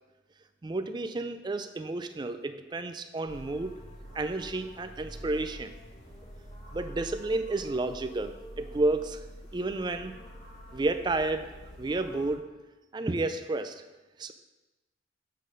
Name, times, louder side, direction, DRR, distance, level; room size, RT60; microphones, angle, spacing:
voice 1, 0.6-3.8 4.1-5.7 6.7-9.2 9.5-10.2 10.7-11.5 11.8-12.5 12.9-13.8 14.2-14.3, right 2 dB, 25° right, 9 dB, 0.3 m, -31 dB
sound 1, 3.3-12.4, equal, 40° left, 1.8 m, -46 dB
8.3 x 3.9 x 5.2 m, 1.2 s
head